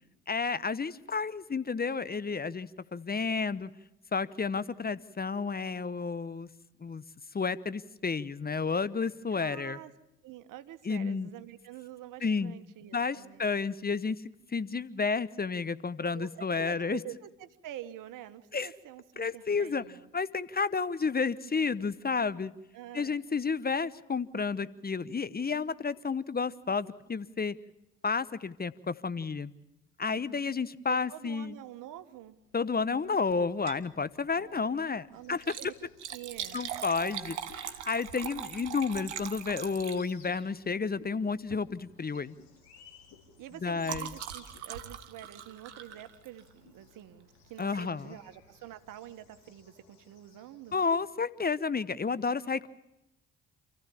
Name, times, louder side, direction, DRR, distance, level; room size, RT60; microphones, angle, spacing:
voice 1, 0.3-3.7 4.1-6.5 6.8-7.0 7.3-9.8 10.9-11.3 12.2-12.6 12.9-14.2 14.5-17.0 18.5-18.7 19.2-19.8 20.1-22.5 22.9-27.6 28.0-29.5 30.0-31.5 32.5-35.4 36.5-42.3 43.6-44.1 47.6-48.2 50.7-52.7, left 5 dB, 25° left, 17 dB, 1.0 m, -31 dB
voice 2, 9.3-9.9 10.2-13.4 16.1-20.1 22.7-23.2 30.1-30.5 30.8-32.4 34.4-35.7 36.1-36.6 43.4-50.8, right 12 dB, 65° right, 12 dB, 1.4 m, -47 dB
Liquid, 33.5-33.9 34.3-34.4 35.3-40.4 41.4-41.7 42.0-42.3 42.6-46.6 47.6-47.8 48.4-48.5 48.7-48.8, right 10 dB, 90° right, 1.1 m, -41 dB
sound 1, 35.1-51.1, left 6 dB, 80° left, 4.9 m, -62 dB
sound 2, 37.5-37.8 38.2-38.5 38.9-39.1 39.6-39.8 40.2-40.4 41.0-41.2 41.7-41.8 42.3-42.5 43.1-43.3 43.8-44.0 44.5-44.7 45.0-45.4 45.9-46.0 46.6-46.8, left 8 dB, 65° left, 3.7 m, -55 dB
27.5 x 15.5 x 7.2 m, 0.93 s
hypercardioid pair, 45°, 34 cm